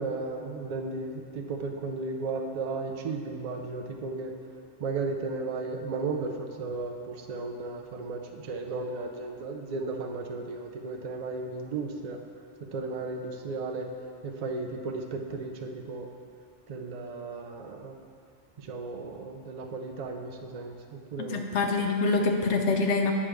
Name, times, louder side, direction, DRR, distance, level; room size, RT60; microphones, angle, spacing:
voice 1, 0.0-4.3 4.8-12.2 12.6-13.9 14.2-16.1 16.7-17.9 18.6-21.4, right 3 dB, 45° right, 3 dB, 0.5 m, -35 dB
voice 2, 21.3-23.1, left 3 dB, 75° left, 3 dB, 1.0 m, -25 dB
8.5 x 3.3 x 6.1 m, 2.2 s
omnidirectional pair, 1.2 m